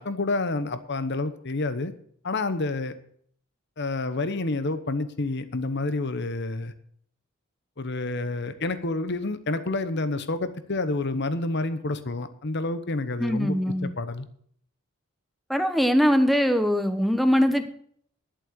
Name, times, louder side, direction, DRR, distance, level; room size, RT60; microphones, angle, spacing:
voice 1, 0.0-1.9 2.2-3.0 3.8-6.7 7.8-13.6 13.8-14.3, left 2 dB, 60° left, 12 dB, 1.0 m, -29 dB
voice 2, 13.2-13.9 15.5-17.7, equal, ahead, 8 dB, 0.9 m, -22 dB
11.5 x 7.6 x 6.7 m, 0.62 s
head